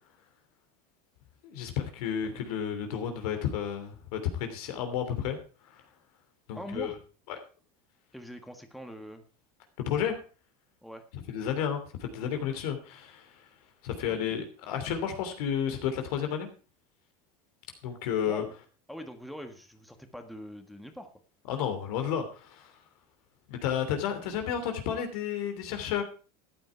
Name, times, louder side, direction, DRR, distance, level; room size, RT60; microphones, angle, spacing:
voice 1, 1.4-5.4 5.7-5.8 6.5-6.9 7.3-7.4 9.9-10.2 11.3-13.3 13.8-16.5 17.8-18.4 21.5-22.7 23.5-26.0, left 8 dB, 75° left, 6 dB, 3.0 m, -32 dB
voice 2, 2.0-2.5 6.5-7.0 8.1-9.2 10.8-11.0 14.1-14.4 18.2-18.5 18.9-21.1 24.2-24.6, equal, ahead, 6 dB, 1.6 m, -43 dB
13.5 x 9.2 x 4.6 m, 0.37 s
supercardioid pair, 115°, 19 cm